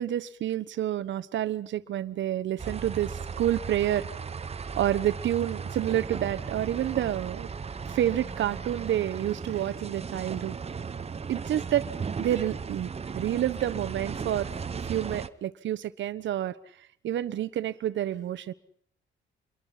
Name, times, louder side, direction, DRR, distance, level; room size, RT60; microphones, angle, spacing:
voice 1, 0.0-4.1 4.8-7.5 7.9-10.6 11.3-11.8 12.2-14.5 14.8-16.5 17.0-18.5, right 12 dB, 70° right, 15 dB, 1.1 m, -29 dB
sound 1, 2.6-15.3, right 5 dB, 30° right, 0.9 m, -36 dB
27.5 x 22.5 x 5.8 m, 0.63 s
cardioid pair, 90°, 20 cm